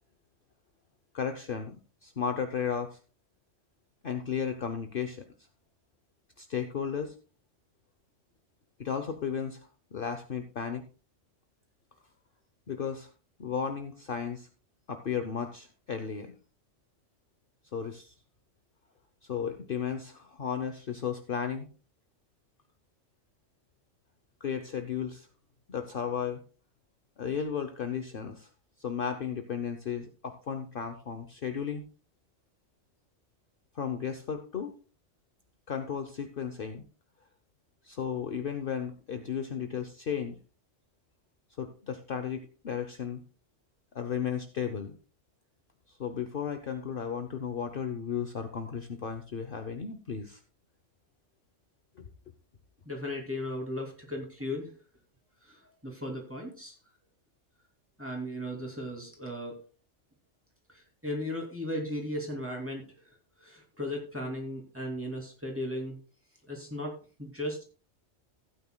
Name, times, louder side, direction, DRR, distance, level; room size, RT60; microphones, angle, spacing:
voice 1, 1.1-1.8 2.0-3.0 4.0-5.2 6.4-7.1 8.8-10.8 12.7-13.1 13.4-14.5 14.9-16.3 17.7-18.1 19.3-21.7 24.4-25.3 25.7-26.4 27.2-28.5 28.8-31.8 33.7-34.7 35.7-36.8 37.8-40.4 41.6-43.2 43.9-44.9 46.0-50.4 52.0-52.1, left 7 dB, 50° left, 7 dB, 0.9 m, -34 dB
voice 2, 52.9-54.7 55.4-56.8 58.0-59.6 60.7-66.0 66.5-67.6, left 1 dB, 10° right, 0 dB, 2.7 m, -36 dB
15.5 x 9.3 x 2.2 m, 0.36 s
omnidirectional pair, 1.3 m